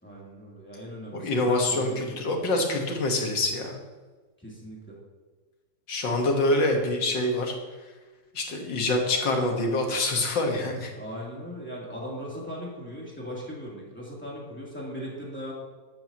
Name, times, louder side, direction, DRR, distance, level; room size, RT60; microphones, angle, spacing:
voice 1, 0.0-2.3 4.4-5.0 10.9-15.5, equal, 5° left, -5 dB, 3.2 m, -38 dB
voice 2, 1.1-3.8 5.9-7.5 8.3-10.9, left 2 dB, 85° left, 2 dB, 2.3 m, -25 dB
13.0 x 12.5 x 3.0 m, 1.3 s
omnidirectional pair, 1.9 m